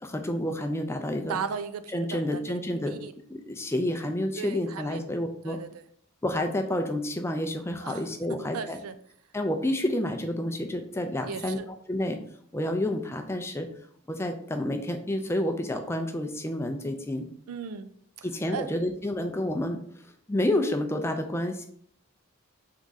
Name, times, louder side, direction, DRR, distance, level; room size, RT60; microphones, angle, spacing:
voice 1, 0.0-1.4 1.9-3.0 3.3-5.6 6.2-8.8 9.3-12.2 12.5-13.7 14.1-17.3 18.2-21.6, left 1 dB, 10° left, 5 dB, 0.4 m, -29 dB
voice 2, 1.3-2.6 2.9-3.1 4.4-5.0 5.4-5.8 7.8-8.0 8.5-8.9 11.2-11.7 17.5-17.9 18.2-18.3 18.5-18.7, right 6 dB, 85° right, 10 dB, 0.4 m, -36 dB
3.7 x 3.5 x 4.0 m, 0.62 s
head